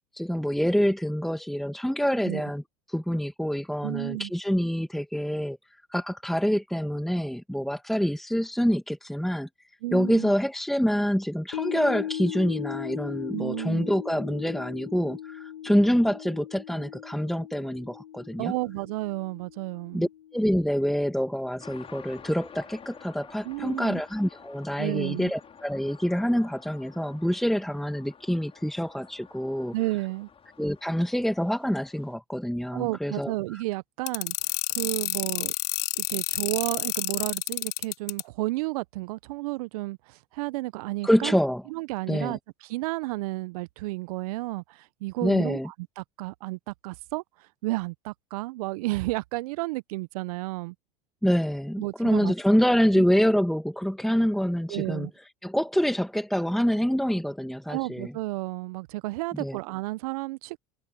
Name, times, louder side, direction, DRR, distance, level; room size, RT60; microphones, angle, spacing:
voice 1, 0.1-2.6 2.9-5.6 5.9-9.5 9.9-18.5 19.9-29.7 30.6-33.6 41.0-41.6 42.1-42.4 45.2-45.7 51.2-55.1 55.4-58.1 59.3-59.6, equal, ahead, 2.0 m, -26 dB
voice 2, 3.8-4.3 9.8-10.3 13.3-13.9 18.4-20.1 23.4-24.0 24.8-25.3 29.7-30.3 32.7-34.3 34.7-35.5 36.0-41.4 41.7-47.2 47.6-50.7 51.8-52.3 52.9-53.0 54.7-55.1 57.7-60.6, right 21 dB, 65° right, 1.0 m, -32 dB
sound 1, 11.5-21.9 22.3-22.4, left 11 dB, 85° left, 1.3 m, -39 dB
sound 2, 21.6-32.2, left 6 dB, 30° left, 5.8 m, -51 dB
sound 3, 34.1-38.2, left 19 dB, 55° left, 2.9 m, -28 dB
hypercardioid pair, 80°, 20 cm